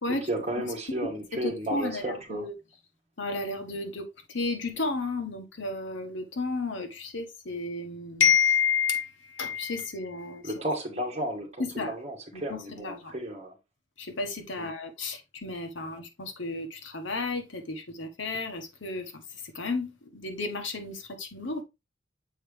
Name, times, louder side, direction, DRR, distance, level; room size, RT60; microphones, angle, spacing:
voice 1, 0.3-2.4 10.4-13.5 14.6-14.7, right 1 dB, 35° right, 1.7 m, -33 dB
voice 2, 1.3-2.5 3.2-10.6 11.6-11.9 12.3-13.1 14.0-21.6, left 5 dB, 90° left, 1.3 m, -31 dB
7.3 x 4.6 x 3.3 m
head